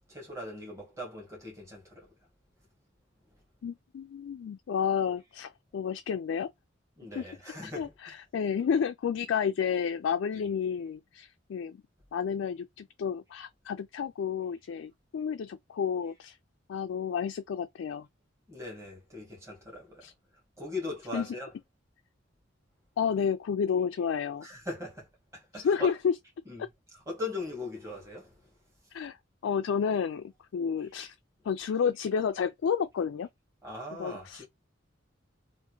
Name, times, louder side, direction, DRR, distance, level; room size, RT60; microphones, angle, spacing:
voice 1, 0.1-2.1 7.0-8.1 18.5-20.0 20.6-21.5 24.4-25.1 25.3-25.9 26.4-26.7 27.0-28.3 33.6-34.5, left 2 dB, 15° right, 1.6 m, -40 dB
voice 2, 3.6-6.5 7.1-7.3 7.6-11.8 12.1-16.4 16.7-18.1 20.0-20.1 21.1-21.3 23.0-24.5 25.6-26.1 26.6-26.7 28.9-29.2 29.4-31.1 31.4-33.3 34.0-34.4, left 7 dB, 80° left, 0.3 m, -31 dB
3.4 x 2.5 x 3.0 m
head